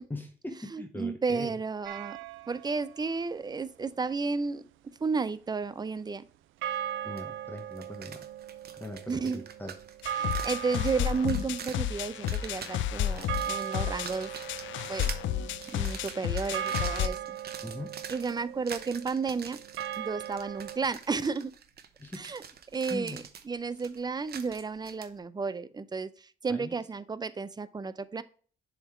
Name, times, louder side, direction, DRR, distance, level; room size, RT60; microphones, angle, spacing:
voice 1, 0.1-1.6 7.0-8.2 8.8-9.7 17.6-17.9 22.0-22.2 22.7-23.2 26.5-26.8, left 1 dB, 10° left, 4 dB, 0.9 m, -40 dB
voice 2, 0.7-2.2 2.5-4.6 5.0-6.3 9.1-9.4 10.2-14.3 14.9-15.1 15.7-17.4 18.1-19.6 20.0-21.5 22.2-22.4 22.7-28.2, right 4 dB, 20° right, 15 dB, 0.5 m, -32 dB
sound 1, 1.9-2.9 6.6-20.8, right 10 dB, 80° right, 0.4 m, -39 dB
sound 2, 7.2-7.3 7.6-25.1, right 7 dB, 50° right, 0.8 m, -45 dB
sound 3, 10.0-17.1, left 11 dB, 70° left, 0.4 m, -32 dB
7.0 x 3.6 x 4.3 m, 0.43 s
cardioid pair, 90°, 20 cm